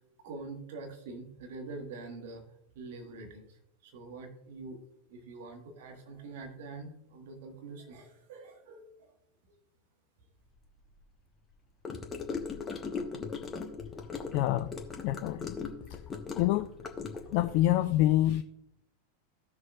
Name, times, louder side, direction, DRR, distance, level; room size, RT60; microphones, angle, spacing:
voice 1, 0.2-2.4 2.7-4.8 5.1-9.1 9.5-9.6, right 3 dB, 55° right, 1.4 m, -45 dB
Gurgling / Car passing by / Sink (filling or washing), 11.8-17.5, left 5 dB, 20° left, 1.1 m, -38 dB
voice 2, 14.3-14.7 15.0-15.6 16.4-16.7 17.3-18.4, left 14 dB, 45° left, 0.3 m, -26 dB
14.5 x 6.3 x 2.4 m
figure-of-eight pair, 90°, 0 cm